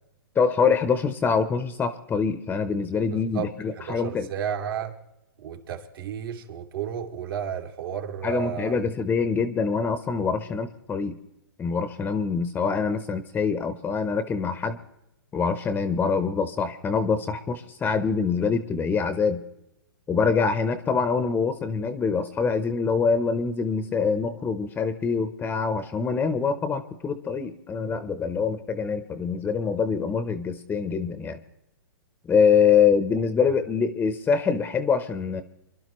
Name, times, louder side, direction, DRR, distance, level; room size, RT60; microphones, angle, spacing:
voice 1, 0.4-4.3 8.2-11.2 11.6-14.8 15.3-19.4 20.1-31.4 32.3-35.4, left 5 dB, 15° left, 0.7 m, -24 dB
voice 2, 3.1-5.0 5.4-8.9, right 8 dB, 65° right, 2.4 m, -33 dB
27.5 x 12.0 x 3.0 m
hypercardioid pair, 140°, 13 cm